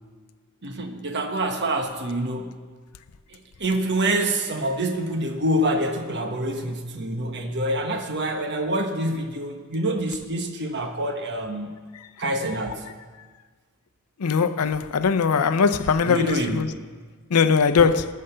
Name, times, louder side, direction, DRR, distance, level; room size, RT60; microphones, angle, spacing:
voice 1, 0.6-2.6 3.3-11.7 12.2-12.8 16.0-16.8 17.8-17.9, right 1 dB, 50° right, 1.2 m, -26 dB
voice 2, 14.2-16.7 17.3-18.1, left 5 dB, 85° left, 0.6 m, -20 dB
19.0 x 6.7 x 6.7 m
head